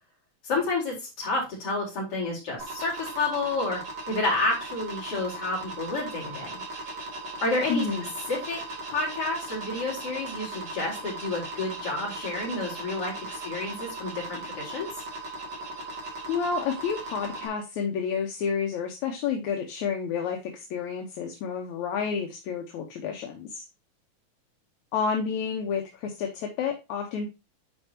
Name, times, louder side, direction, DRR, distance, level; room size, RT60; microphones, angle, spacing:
voice 1, 0.4-3.8 4.1-6.6 7.4-7.8 8.3-8.6 8.9-14.9, left 2 dB, 50° left, -4 dB, 4.8 m, -30 dB
sound 1, 2.6-17.5, right 2 dB, 35° right, 2.6 m, -38 dB
voice 2, 7.7-8.1 16.3-23.7 24.9-27.3, left 6 dB, 75° left, 3 dB, 2.3 m, -30 dB
10.5 x 4.5 x 2.8 m, 0.26 s
omnidirectional pair, 3.4 m